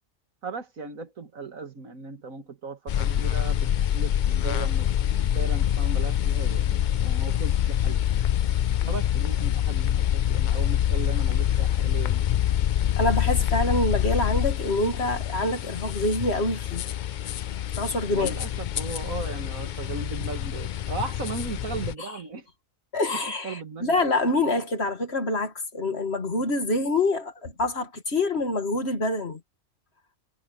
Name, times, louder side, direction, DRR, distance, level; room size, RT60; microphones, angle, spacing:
voice 1, 0.4-8.0 8.8-12.3 18.0-22.5 23.1-23.9, right 4 dB, 85° right, 2.3 m, -37 dB
sound 1, 2.9-21.9, left 11 dB, 85° left, 0.4 m, -25 dB
voice 2, 13.0-16.8 17.7-18.3 22.9-29.4, left 2 dB, 50° left, 2.3 m, -26 dB
omnidirectional pair, 1.4 m